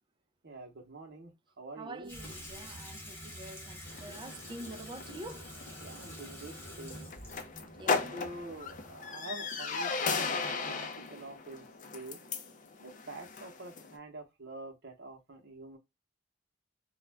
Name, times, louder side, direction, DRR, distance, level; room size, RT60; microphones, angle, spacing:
voice 1, 0.4-2.1 5.8-7.2 8.1-10.8 11.1-11.7 11.9-12.2 12.8-15.8, right 2 dB, 60° right, 0.8 m, -46 dB
voice 2, 1.8-5.5 7.6-8.2, right 1 dB, 25° right, 0.4 m, -46 dB
Water tap faucet / Sink (filling or washing), 2.1-9.1, equal, 10° left, 0.8 m, -47 dB
sound 1, 3.9-13.9, left 4 dB, 40° left, 0.5 m, -37 dB
2.4 x 2.1 x 3.2 m
head